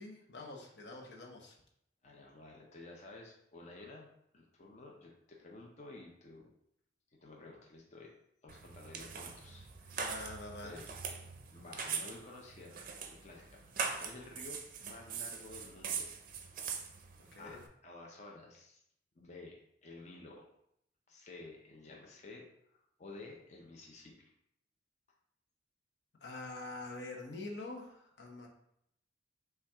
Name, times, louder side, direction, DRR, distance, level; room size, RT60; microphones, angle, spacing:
voice 1, 0.0-1.6 10.0-10.8 17.3-17.6 26.2-28.5, left 2 dB, 65° left, 0 dB, 0.9 m, -45 dB
voice 2, 2.0-6.5 7.2-8.1 8.4-10.3 10.6-10.9 11.5-16.1 16.7-16.9 17.4-18.8 19.2-20.5 21.1-22.4 22.7-24.3, left 2 dB, 40° left, -1 dB, 0.6 m, -52 dB
sound 1, 8.5-17.7, right 6 dB, 45° right, 0.5 m, -42 dB
5.6 x 2.4 x 3.5 m, 0.75 s
head